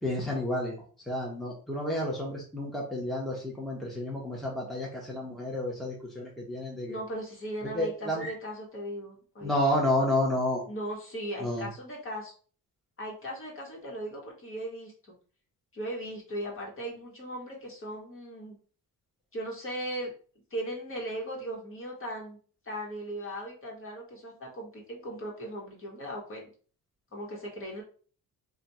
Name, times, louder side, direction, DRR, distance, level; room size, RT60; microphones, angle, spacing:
voice 1, 0.0-0.7 1.1-7.0 7.7-8.3 9.4-10.6 11.4-11.7, left 1 dB, ahead, -3 dB, 1.0 m, -30 dB
voice 2, 6.9-9.5 10.7-12.3 13.0-15.1 15.7-18.6 19.3-20.1 20.5-22.4 22.6-26.4 27.1-27.8, right 1 dB, 35° left, -1 dB, 1.4 m, -38 dB
3.3 x 2.5 x 4.2 m, 0.42 s
cardioid pair, 125°, 36 cm